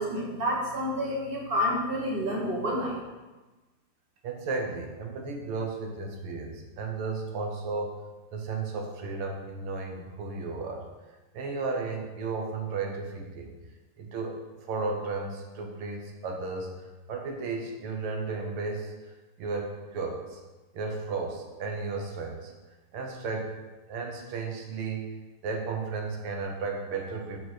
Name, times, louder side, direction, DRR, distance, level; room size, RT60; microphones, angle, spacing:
voice 1, 0.0-3.0, equal, 30° right, -2 dB, 1.3 m, -29 dB
voice 2, 4.2-8.0 8.3-10.8 11.3-13.5 14.0-14.4 14.7-16.7 17.1-18.9 19.4-20.4 20.7-22.5 22.9-23.5 23.9-25.1 25.4-27.4, right 4 dB, 85° right, 2 dB, 2.0 m, -34 dB
6.5 x 6.4 x 4.4 m, 1.2 s
omnidirectional pair, 2.4 m